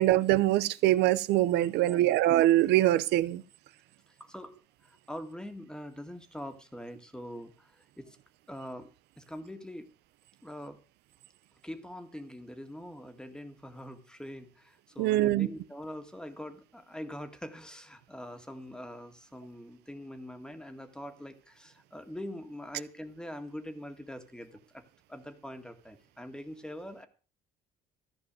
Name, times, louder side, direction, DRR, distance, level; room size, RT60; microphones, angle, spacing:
voice 1, 0.0-3.4 15.0-15.5, right 15 dB, 85° right, 0.8 m, -23 dB
voice 2, 1.8-2.2 4.1-4.6 4.8-8.2 8.5-9.9 10.4-10.8 11.6-24.8 25.1-27.1, left 1 dB, 5° left, 1.9 m, -43 dB
14.5 x 5.3 x 9.1 m
cardioid pair, 110°, 17 cm